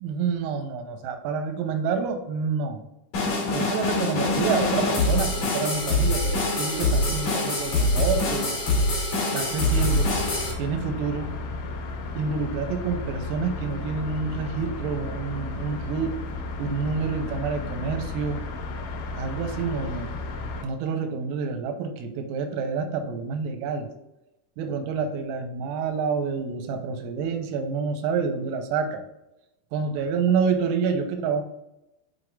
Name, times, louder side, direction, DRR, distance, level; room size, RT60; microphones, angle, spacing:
voice 1, 0.0-2.8 3.4-8.6 9.3-10.1 10.6-11.3 12.1-16.2 16.6-18.4 19.1-20.2 20.6-23.9 24.6-29.0 29.7-31.4, right 5 dB, 90° right, 5 dB, 3.4 m, -28 dB
sound 1, 3.1-10.5, left 2 dB, 45° left, 3.1 m, -24 dB
sound 2, 9.6-20.6, left 3 dB, 75° left, 3.7 m, -34 dB
7.9 x 5.2 x 2.4 m, 0.92 s
omnidirectional pair, 5.9 m